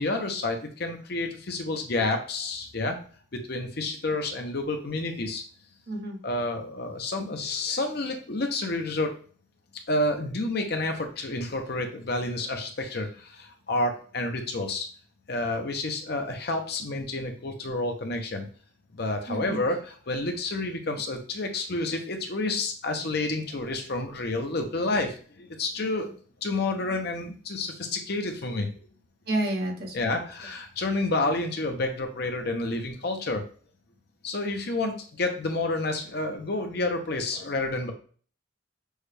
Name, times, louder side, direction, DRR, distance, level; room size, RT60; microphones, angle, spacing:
voice 1, 0.0-3.0 3.3-5.4 6.2-9.1 9.9-14.9 15.3-18.5 18.9-26.1 26.4-28.7 29.9-33.4 34.2-37.9, left 2 dB, 50° left, 4 dB, 0.7 m, -29 dB
voice 2, 5.9-6.2 19.3-19.6 25.8-26.1 29.3-30.2, right 1 dB, 50° right, 0 dB, 1.2 m, -31 dB
6.3 x 2.3 x 3.3 m, 0.42 s
head